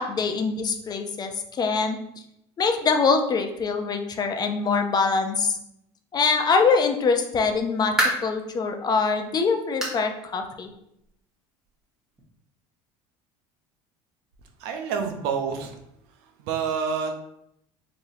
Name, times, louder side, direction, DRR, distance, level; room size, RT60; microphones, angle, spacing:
voice 1, 0.0-2.0 2.6-5.6 6.1-10.7, left 4 dB, 30° left, 5 dB, 0.6 m, -24 dB
sound 1, 7.6-8.4 8.9-9.0 9.8-10.1 10.4-10.5 11.0-11.1 12.2-12.3, right 1 dB, 5° right, 1.2 m, -27 dB
voice 2, 14.6-15.8 16.4-17.1, right 6 dB, 75° right, 4 dB, 0.6 m, -28 dB
4.0 x 2.7 x 2.6 m, 0.78 s
supercardioid pair, 90°, 13 cm